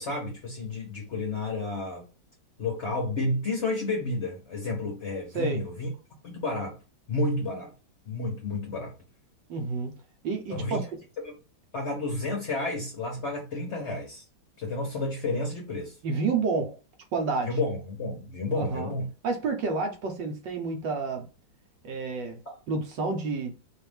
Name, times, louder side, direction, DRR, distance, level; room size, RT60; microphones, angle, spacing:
voice 1, 0.0-2.1 2.6-5.9 6.2-6.8 7.1-7.7 8.1-8.9 10.5-10.8 11.2-11.3 11.7-14.3 14.6-16.0 17.4-19.1 22.5-22.6, left 2 dB, 50° left, 0.9 m, -31 dB
voice 2, 5.3-5.7 9.5-9.9 10.2-10.8 16.0-16.8 17.1-17.5 18.5-18.9 19.2-21.3 21.8-22.4 22.7-23.5, right 4 dB, 70° right, 1.5 m, -29 dB
4.4 x 2.5 x 3.4 m
omnidirectional pair, 2.1 m